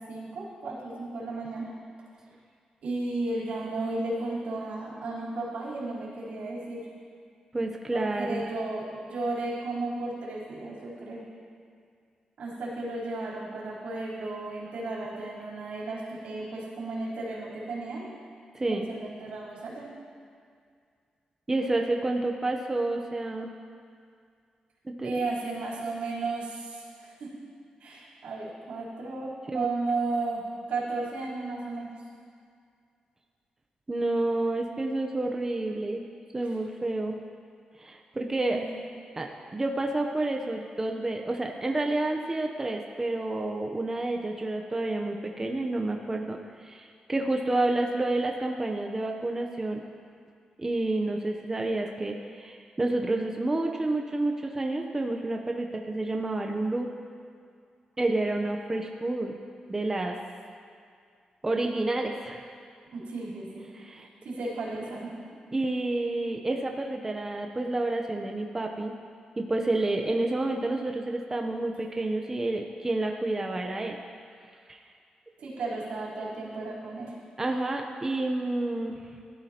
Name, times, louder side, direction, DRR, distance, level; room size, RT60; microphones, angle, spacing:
voice 1, 0.1-1.7 2.8-6.8 7.9-11.2 12.4-18.1 18.7-19.9 25.0-27.3 27.8-30.4 30.7-31.9 38.5-38.9 62.9-63.7 64.0-65.1 75.4-77.2, right 2 dB, 85° right, -7 dB, 3.7 m, -34 dB
voice 2, 7.5-8.5 18.5-18.9 21.5-23.5 24.8-25.1 29.5-29.7 33.9-36.0 36.3-37.2 37.8-38.6 39.2-49.8 50.6-56.9 58.0-59.3 59.7-60.2 61.4-62.4 63.7-64.1 65.5-68.9 69.4-74.0 74.7-74.8 77.4-79.0, right 2 dB, 20° right, 2 dB, 0.7 m, -29 dB
16.5 x 12.5 x 2.9 m, 2.2 s
wide cardioid pair, 120°, 2 cm